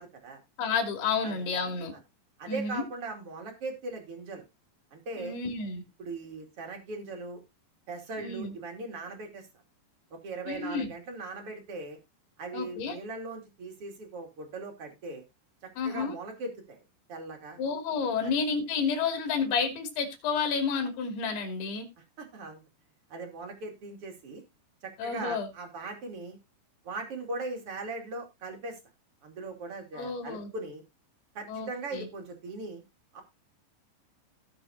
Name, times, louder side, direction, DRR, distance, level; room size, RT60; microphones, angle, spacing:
voice 1, 0.0-0.4 1.2-1.4 2.4-4.4 4.9-5.4 6.0-7.4 7.9-9.5 10.2-12.0 12.4-15.2 15.8-16.8 17.1-17.6 18.2-18.3 22.2-22.6 23.1-24.4 24.8-26.4 26.8-28.8 29.2-30.8 31.3-32.8 33.1-33.2, right 3 dB, 40° right, 3 dB, 2.8 m, -39 dB
voice 2, 0.6-1.9 2.5-2.9 5.2-5.8 8.2-8.5 10.5-10.9 12.5-13.0 15.8-16.1 17.6-21.9 25.0-25.5 29.9-30.5 31.5-32.1, left 5 dB, 65° left, 3 dB, 4.7 m, -30 dB
18.5 x 6.1 x 2.8 m, 0.23 s
omnidirectional pair, 5.2 m